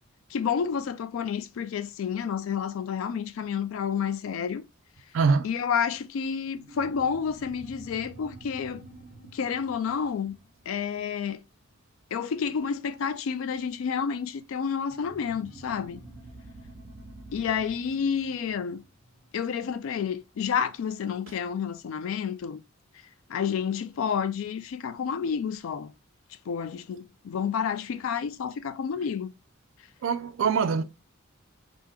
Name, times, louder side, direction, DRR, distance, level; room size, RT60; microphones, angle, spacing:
voice 1, 0.3-4.6 5.4-8.8 9.3-10.4 10.7-11.4 12.1-16.0 17.3-18.8 19.3-22.6 23.3-25.9 26.5-29.3, left 7 dB, 65° left, 0.3 m, -30 dB
voice 2, 5.1-5.5 30.0-30.8, right 5 dB, 60° right, 0.3 m, -23 dB
sound 1, 6.5-11.5 14.9-19.8, right 2 dB, 40° right, 0.9 m, -49 dB
3.4 x 2.0 x 3.2 m
head